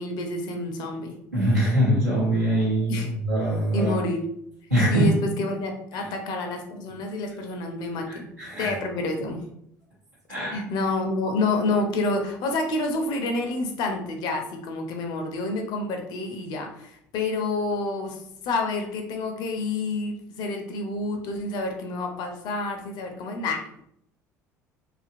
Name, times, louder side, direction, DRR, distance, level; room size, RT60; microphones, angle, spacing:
voice 1, 0.0-1.2 2.9-3.1 3.7-4.2 4.9-8.3 8.6-9.4 10.5-23.8, left 2 dB, 50° left, 4 dB, 0.6 m, -28 dB
voice 2, 1.3-3.9 4.7-5.1 5.9-6.1 8.1-8.7 10.3-10.6, equal, 85° right, -10 dB, 0.8 m, -23 dB
2.7 x 2.5 x 2.5 m, 0.72 s
figure-of-eight pair, 60°, 9 cm